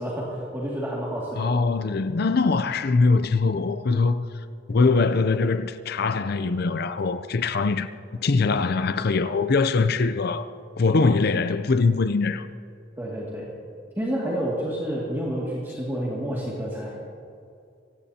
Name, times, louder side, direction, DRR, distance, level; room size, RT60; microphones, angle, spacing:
voice 1, 0.0-1.5 13.0-13.5 14.0-16.9, equal, 15° right, 2.2 m, -29 dB
voice 2, 1.4-4.3 4.7-7.9 8.2-10.5 10.8-12.5, left 4 dB, 55° left, 0.5 m, -22 dB
25.0 x 17.0 x 2.9 m
head